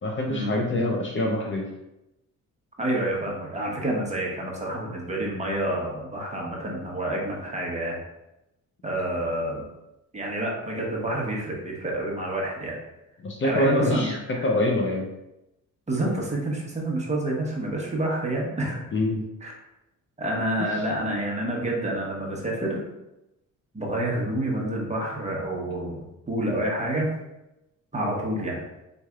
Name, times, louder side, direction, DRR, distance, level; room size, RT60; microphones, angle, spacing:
voice 1, 0.0-1.7 13.2-14.1 14.4-15.1 18.9-19.2, left 1 dB, 35° left, 0 dB, 0.7 m, -25 dB
voice 2, 2.8-8.0 8.8-9.6 10.1-12.8 13.4-14.5 15.9-18.8 19.4-19.5 20.2-22.8 23.7-27.1 27.9-28.6, right 1 dB, 20° right, -2 dB, 1.1 m, -28 dB
4.2 x 3.2 x 2.5 m, 0.91 s
cardioid pair, 90°, 35 cm